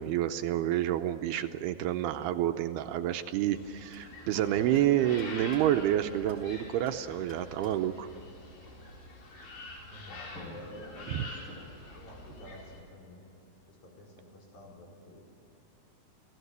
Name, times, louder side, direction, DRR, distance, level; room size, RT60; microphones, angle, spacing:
voice 1, 0.0-8.1 11.1-11.3, right 12 dB, 80° right, 8 dB, 2.6 m, -29 dB
sound 1, 3.6-12.8, left 2 dB, 80° left, 5.9 m, -46 dB
sound 2, 3.9-6.5 6.9-8.0 10.0-10.1 10.3-12.0, left 1 dB, 20° left, 4.5 m, -53 dB
voice 2, 9.8-11.4 11.9-13.2 13.7-15.2, left 1 dB, 60° left, -2 dB, 6.6 m, -50 dB
29.5 x 16.5 x 8.1 m, 2.9 s
omnidirectional pair, 4.8 m